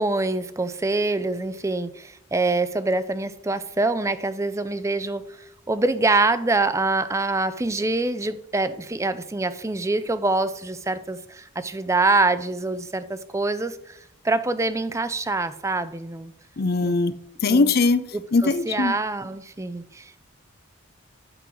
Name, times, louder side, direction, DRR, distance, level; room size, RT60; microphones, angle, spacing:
voice 1, 0.0-5.2 5.7-14.0 14.2-16.3 16.8-16.9 17.5-17.7 18.4-20.1, right 2 dB, 15° right, 0.4 m, -25 dB
voice 2, 16.6-17.1 17.4-18.0 18.3-18.9, left 3 dB, 45° left, 0.5 m, -20 dB
11.0 x 3.9 x 6.1 m
head